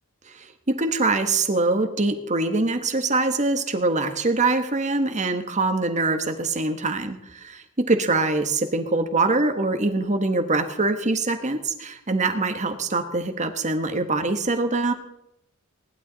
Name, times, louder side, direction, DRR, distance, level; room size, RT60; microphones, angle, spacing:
voice 1, 0.3-14.9, right 3 dB, 35° right, 7 dB, 1.4 m, -24 dB
18.5 x 12.0 x 4.1 m, 0.81 s
head